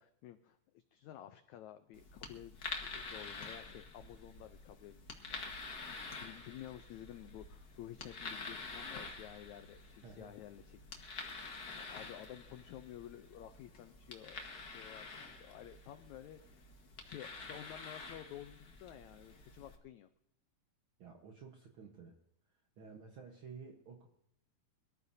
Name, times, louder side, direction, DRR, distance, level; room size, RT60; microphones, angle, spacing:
voice 1, 0.0-11.1 11.6-16.7 17.0-20.1, left 12 dB, 90° left, 9 dB, 1.6 m, -52 dB
sound 1, 1.9-19.8, left 3 dB, 50° left, 1.1 m, -48 dB
voice 2, 10.0-10.4 10.7-10.8 21.0-22.2 22.8-24.1, right 5 dB, 70° right, 2 dB, 1.2 m, -52 dB
23.0 x 13.0 x 2.7 m, 0.75 s
omnidirectional pair, 4.1 m